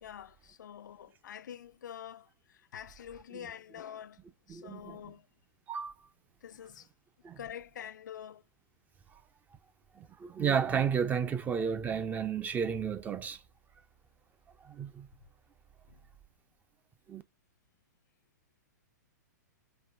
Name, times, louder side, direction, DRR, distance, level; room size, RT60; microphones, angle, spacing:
voice 1, 0.0-4.2 4.5-5.3 6.4-6.9 7.4-8.4 15.9-16.0, left 9 dB, 75° left, 0.4 m, -46 dB
voice 2, 4.5-5.0 5.7-5.9 7.2-7.4 9.1-9.2 9.9-13.4 14.6-15.1 17.1-17.2, right 7 dB, 15° right, 0.4 m, -32 dB
5.3 x 2.6 x 2.4 m
hypercardioid pair, 120°, 10 cm